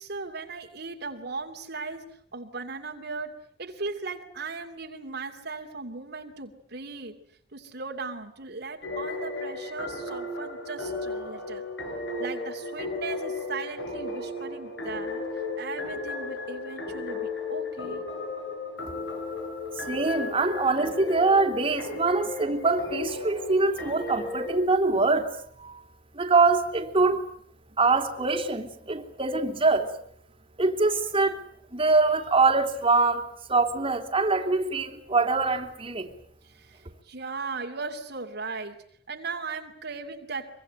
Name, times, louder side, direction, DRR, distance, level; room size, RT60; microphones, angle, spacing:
voice 1, 0.0-7.2 7.5-11.6 12.2-15.2 15.6-18.0 21.5-21.6 36.4-38.8 39.1-40.5, right 4 dB, 60° right, 2.7 m, -37 dB
sound 1, 8.8-24.5, left 3 dB, 70° left, 7.8 m, -35 dB
voice 2, 19.8-25.3 25.6-25.8 26.1-27.3 27.8-29.9 30.6-31.4 31.7-36.1, right 3 dB, 30° right, 3.2 m, -24 dB
24.5 x 24.5 x 9.1 m
head